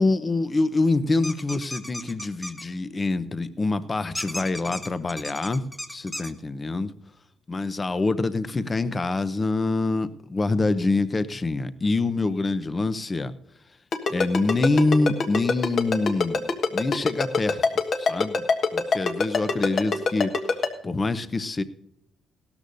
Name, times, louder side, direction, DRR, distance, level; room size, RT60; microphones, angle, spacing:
voice 1, 0.0-5.6 5.9-6.9 7.5-13.3 14.1-17.6 18.0-18.4 18.7-21.6, left 3 dB, 30° left, 13 dB, 0.8 m, -25 dB
sound 1, 1.2-2.6 4.1-6.3, left 1 dB, 10° left, 1.2 m, -35 dB
Ringtone, 13.9-20.7, left 4 dB, 55° left, 1.4 m, -22 dB
17.0 x 13.0 x 2.7 m, 0.79 s
cardioid pair, 90°, 0 cm